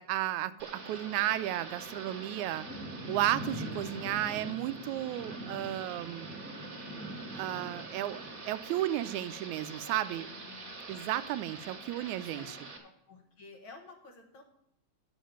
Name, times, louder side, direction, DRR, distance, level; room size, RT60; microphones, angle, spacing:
voice 1, 0.0-2.7 3.1-6.3 7.3-10.3 10.9-12.6, right 14 dB, 85° right, 13 dB, 2.0 m, -33 dB
Thunder / Rain, 0.6-12.8, right 2 dB, 35° right, 2.0 m, -43 dB
voice 2, 9.8-10.7 12.0-12.5 12.8-14.4, left 3 dB, 50° left, 2 dB, 1.8 m, -53 dB
7.7 x 7.3 x 8.5 m, 0.79 s
omnidirectional pair, 3.3 m